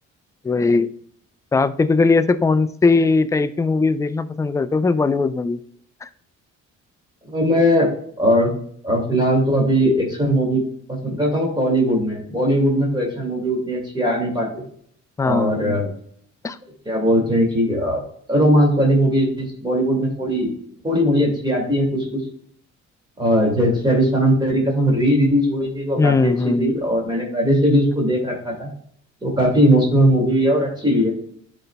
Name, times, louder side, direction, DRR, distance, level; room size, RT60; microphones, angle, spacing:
voice 1, 0.4-0.9 1.5-5.6 6.0-6.1 15.2-15.8 16.4-16.6 26.0-26.7, left 4 dB, 10° left, 12 dB, 0.3 m, -19 dB
voice 2, 7.3-7.9 8.2-8.5 8.8-10.6 10.9-14.6 15.2-15.9 16.9-18.0 18.3-20.5 20.8-22.2 23.2-28.7 29.2-31.1, equal, 15° right, -1 dB, 2.2 m, -19 dB
10.5 x 4.0 x 2.2 m, 0.64 s
cardioid pair, 90°, 30 cm